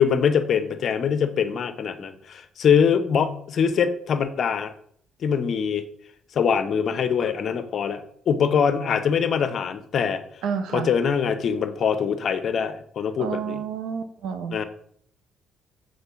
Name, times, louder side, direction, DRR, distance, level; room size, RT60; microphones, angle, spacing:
voice 1, 0.0-4.7 5.2-5.8 6.3-10.2 10.7-13.6 14.5-14.6, left 7 dB, 55° left, 10 dB, 0.8 m, -23 dB
voice 2, 10.4-10.9 13.2-14.6, right 6 dB, 75° right, 8 dB, 1.0 m, -29 dB
6.6 x 4.4 x 5.7 m, 0.64 s
supercardioid pair, 80°, 0 cm